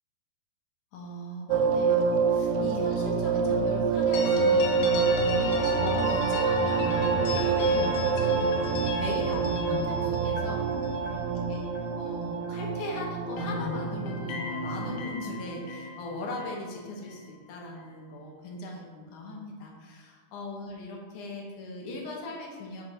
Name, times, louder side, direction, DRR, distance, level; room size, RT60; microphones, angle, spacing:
voice 1, 0.9-10.6 11.1-11.6 12.0-22.8, left 2 dB, 65° left, -1 dB, 2.2 m, -39 dB
sound 1, 1.5-15.1, right 5 dB, 85° right, 2.7 m, -27 dB
sound 2, 4.1-12.9 13.1-17.3, left 2 dB, 90° left, 3.0 m, -35 dB
7.7 x 6.6 x 4.3 m, 1.5 s
omnidirectional pair, 4.5 m